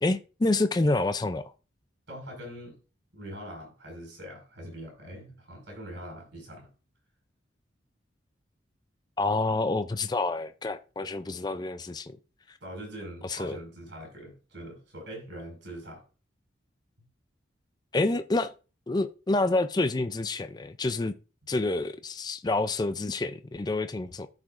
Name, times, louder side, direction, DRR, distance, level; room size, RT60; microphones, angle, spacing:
voice 1, 0.0-1.4 9.2-12.2 13.2-13.6 17.9-18.5 18.9-21.1 21.5-24.3, left 2 dB, 20° left, 0.4 m, -28 dB
voice 2, 2.1-2.8 3.1-6.7 12.6-16.0, equal, 70° right, 5.0 m, -42 dB
14.0 x 4.9 x 2.5 m
head